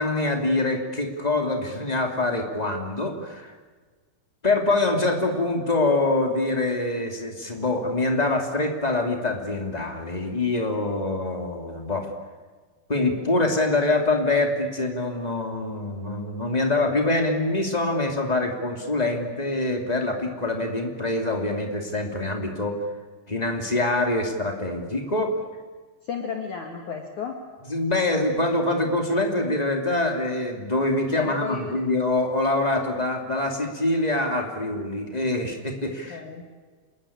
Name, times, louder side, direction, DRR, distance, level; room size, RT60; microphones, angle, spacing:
voice 1, 0.0-3.5 4.4-12.1 12.9-22.8 23.3-25.3 27.7-36.2, left 2 dB, 15° left, 3 dB, 1.6 m, -25 dB
voice 2, 26.0-27.3 31.1-31.7 36.1-36.4, left 6 dB, 50° left, 3 dB, 2.8 m, -33 dB
28.0 x 22.0 x 8.8 m, 1.4 s
omnidirectional pair, 5.5 m